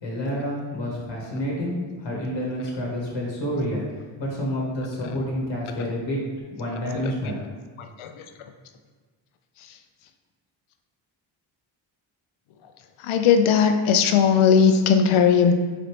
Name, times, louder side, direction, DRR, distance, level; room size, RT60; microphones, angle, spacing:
voice 1, 0.0-1.7 2.0-3.8 4.2-6.2 6.5-7.4, equal, 60° left, -3 dB, 1.1 m, -28 dB
voice 2, 13.1-15.5, left 6 dB, 75° left, 6 dB, 0.5 m, -18 dB
4.0 x 3.3 x 2.9 m, 1.4 s
cardioid pair, 95°, 49 cm